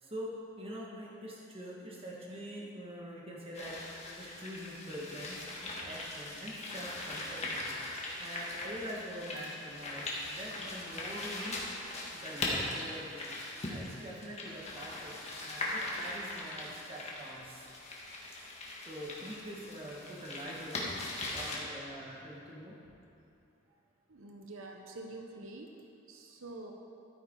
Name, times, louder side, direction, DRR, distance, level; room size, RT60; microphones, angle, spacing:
voice 1, 0.0-5.4 5.8-7.7 8.2-11.7 12.1-13.3 13.7-17.8 18.1-18.4 18.9-22.8, equal, 30° right, -4 dB, 1.8 m, -44 dB
sound 1, 3.5-21.6, left 2 dB, 35° left, 1.6 m, -40 dB
voice 2, 24.1-25.7 26.1-26.7, right 2 dB, 85° right, 2 dB, 0.9 m, -46 dB
13.0 x 9.1 x 3.9 m, 2.7 s
head